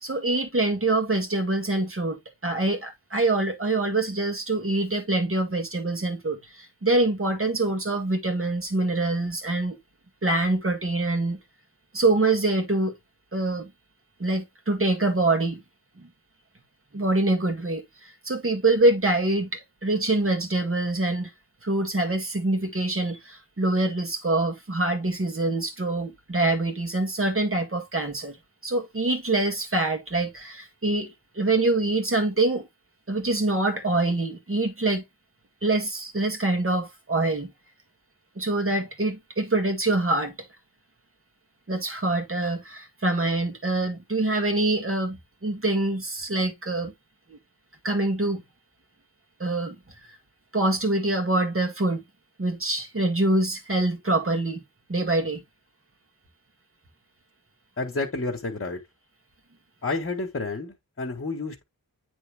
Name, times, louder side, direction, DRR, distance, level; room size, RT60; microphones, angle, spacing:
voice 1, 0.0-9.8 10.2-11.4 11.9-12.9 13.3-13.7 14.2-15.6 16.0-16.1 16.9-21.3 21.6-28.4 28.6-32.7 33.1-35.0 35.6-37.5 38.4-40.5 41.7-46.9 47.3-47.4 47.8-48.4 49.4-49.8 50.5-52.0 52.4-54.6 54.9-55.4, right 2 dB, 35° right, 2.0 m, -25 dB
voice 2, 57.8-58.8 59.8-61.6, left 3 dB, 40° left, 1.6 m, -30 dB
8.8 x 3.6 x 3.5 m
wide cardioid pair, 85°, 37 cm